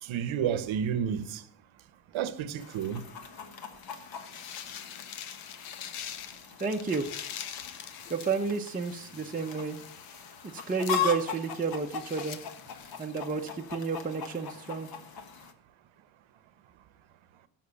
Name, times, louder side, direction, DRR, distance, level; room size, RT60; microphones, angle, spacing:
voice 1, 0.0-1.4 2.1-3.0, right 8 dB, 70° right, 1.1 m, -30 dB
Chicken rooster, 2.6-15.5, left 7 dB, 45° left, 1.3 m, -40 dB
sound 1, 3.8-13.3, left 9 dB, 80° left, 1.1 m, -45 dB
voice 2, 6.6-7.1 8.1-9.8 10.5-12.4 13.0-14.9, right 4 dB, 15° right, 0.8 m, -31 dB
12.0 x 6.0 x 7.0 m
cardioid pair, 110°, 49 cm